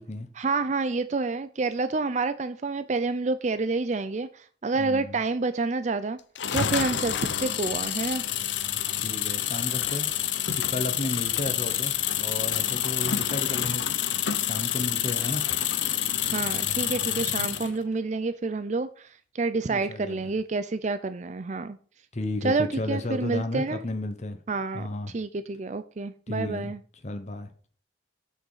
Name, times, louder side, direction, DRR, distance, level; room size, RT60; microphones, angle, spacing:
voice 1, 0.4-6.2 6.5-8.2 16.3-21.8 22.4-23.8 24.5-24.9 25.1-26.8, right 3 dB, 40° right, 0.5 m, -28 dB
voice 2, 4.8-5.2 9.0-10.1 10.6-13.8 14.4-15.4 19.7-20.2 22.1-24.4 24.7-25.1 26.3-26.7 27.0-27.5, left 1 dB, 40° left, 1.0 m, -33 dB
sound 1, 6.3-17.7, left 10 dB, 80° left, 0.7 m, -28 dB
7.9 x 6.5 x 5.6 m
head